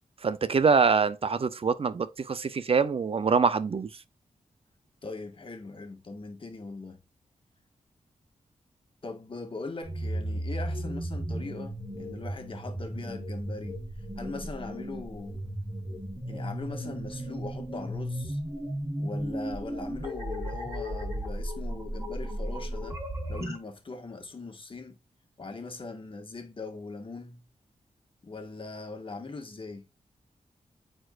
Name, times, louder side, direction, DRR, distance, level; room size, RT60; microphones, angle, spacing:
voice 1, 0.2-3.9, right 5 dB, 50° right, 0.6 m, -24 dB
voice 2, 5.0-7.0 9.0-13.8 14.2-15.4 16.2-18.4 19.0-23.0 23.3-25.0 25.4-27.4 28.2-29.9, left 3 dB, 45° left, 1.6 m, -40 dB
sound 1, 9.8-23.6, equal, 25° right, 3.6 m, -35 dB
9.0 x 4.4 x 2.5 m
cardioid pair, 75°, 13 cm